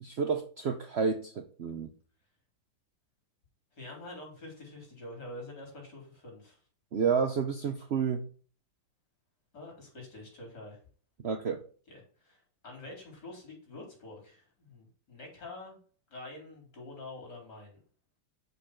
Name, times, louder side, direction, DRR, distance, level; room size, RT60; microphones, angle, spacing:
voice 1, 0.0-1.9 6.9-8.2 11.2-11.6, right 6 dB, 85° right, 7 dB, 0.5 m, -30 dB
voice 2, 3.7-6.6 9.5-10.8 11.9-15.8 16.1-17.8, left 2 dB, 60° left, -1 dB, 4.5 m, -46 dB
6.6 x 5.5 x 5.9 m, 0.42 s
omnidirectional pair, 2.1 m